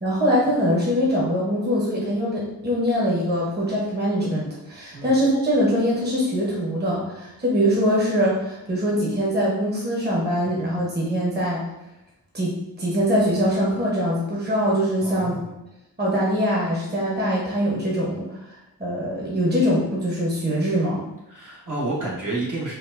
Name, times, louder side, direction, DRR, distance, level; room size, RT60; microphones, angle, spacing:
voice 1, 0.0-11.6 12.3-15.4 16.0-18.4 18.8-21.0, equal, 30° right, -5 dB, 0.9 m, -23 dB
voice 2, 15.0-15.5 21.3-22.7, right 2 dB, 55° right, -6 dB, 1.1 m, -29 dB
4.4 x 2.4 x 2.5 m, 0.93 s
wide cardioid pair, 80°, 36 cm